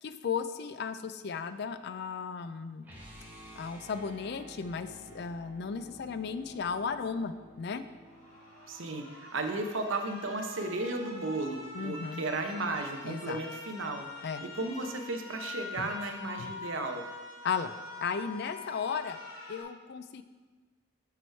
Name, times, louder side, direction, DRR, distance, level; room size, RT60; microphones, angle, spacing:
voice 1, 0.0-2.9 3.5-7.8 11.7-12.2 13.0-13.4 14.2-14.4 15.8-15.9 16.4-16.6 17.4-19.2 19.5-20.2, left 6 dB, 50° left, 11 dB, 0.3 m, -35 dB
sound 1, 2.8-8.9, equal, 10° right, 1.1 m, -52 dB
sound 2, 8.0-19.6, left 3 dB, 85° left, 2.0 m, -45 dB
voice 2, 8.7-14.1 14.4-17.1, right 2 dB, 65° right, 5 dB, 0.7 m, -34 dB
6.9 x 4.7 x 4.5 m, 1.4 s
head